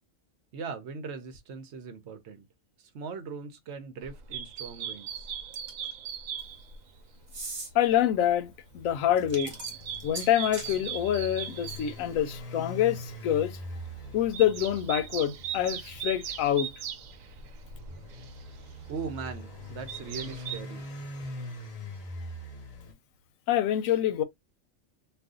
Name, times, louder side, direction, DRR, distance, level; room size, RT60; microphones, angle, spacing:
voice 1, 0.5-2.5 2.8-5.3 18.9-20.9, right 5 dB, 65° right, 0.8 m, -40 dB
sound 1, 4.0-6.9 7.3-8.0 8.5-12.4 12.8-13.1 13.5-20.6, right 8 dB, 90° right, 1.0 m, -40 dB
sound 2, 5.5-5.9 7.3-7.7 9.2-10.8, right 2 dB, 35° right, 0.9 m, -39 dB
voice 2, 7.7-9.6 10.0-13.6 14.1-16.7 23.5-24.2, left 11 dB, 85° left, 1.0 m, -26 dB
sound 3, 8.5-22.9, left 1 dB, 40° left, 0.5 m, -43 dB
2.5 x 2.4 x 3.5 m
omnidirectional pair, 1.4 m